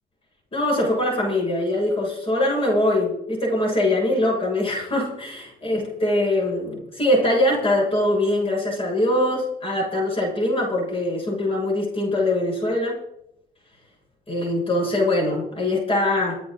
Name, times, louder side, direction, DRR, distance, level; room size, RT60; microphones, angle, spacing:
voice 1, 0.5-13.0 14.3-16.3, left 1 dB, 30° left, -2 dB, 7.2 m, -22 dB
27.0 x 9.4 x 4.1 m, 0.81 s
cardioid pair, 125°, 19 cm